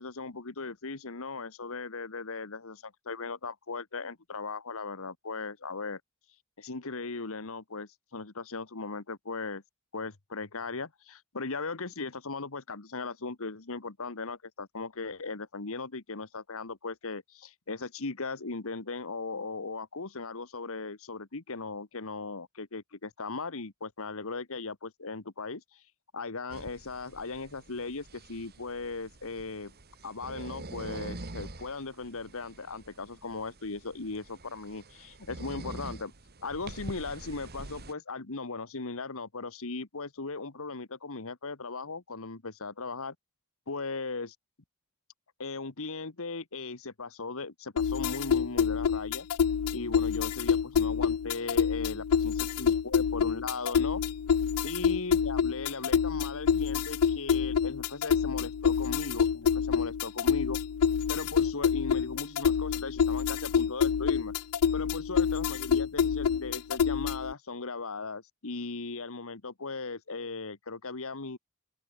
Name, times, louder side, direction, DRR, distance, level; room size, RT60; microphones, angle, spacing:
voice 1, 0.0-6.0 6.6-9.6 9.9-25.8 26.1-29.7 30.0-36.1 36.4-43.1 43.7-44.3 45.4-49.3 49.7-54.0 54.6-60.6 61.1-64.3 64.7-71.4, left 3 dB, 65° left, 1.5 m, -38 dB
sound 1, 26.5-37.9, right 2 dB, 45° right, 2.3 m, -45 dB
sound 2, 47.8-67.3, left 7 dB, 90° left, 0.4 m, -27 dB
open air
head